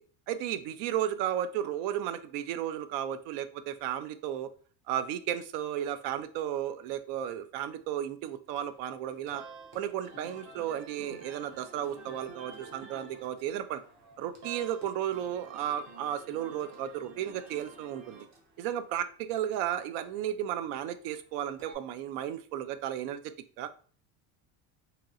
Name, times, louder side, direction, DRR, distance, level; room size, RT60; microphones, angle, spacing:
voice 1, 0.3-4.5 4.9-9.4 9.7-13.8 14.2-18.3 18.6-23.2 23.6-23.7, right 10 dB, 85° right, 11 dB, 0.5 m, -34 dB
sound 1, 8.5-21.8, right 3 dB, 45° right, 0.9 m, -51 dB
2.9 x 2.8 x 2.4 m, 0.41 s
cardioid pair, 160°, 38 cm